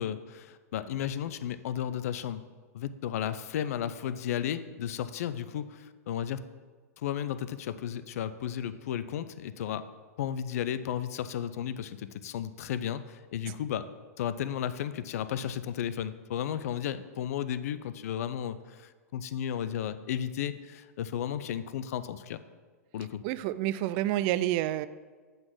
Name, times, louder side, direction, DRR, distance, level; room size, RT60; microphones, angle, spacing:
voice 1, 0.0-2.4 2.7-6.4 7.0-9.8 10.2-13.9 14.2-22.4 22.9-23.2, left 10 dB, 65° left, 13 dB, 0.4 m, -34 dB
voice 2, 23.2-24.9, right 14 dB, 45° right, 15 dB, 0.3 m, -29 dB
7.7 x 3.9 x 6.0 m, 1.5 s
hypercardioid pair, 110°, 9 cm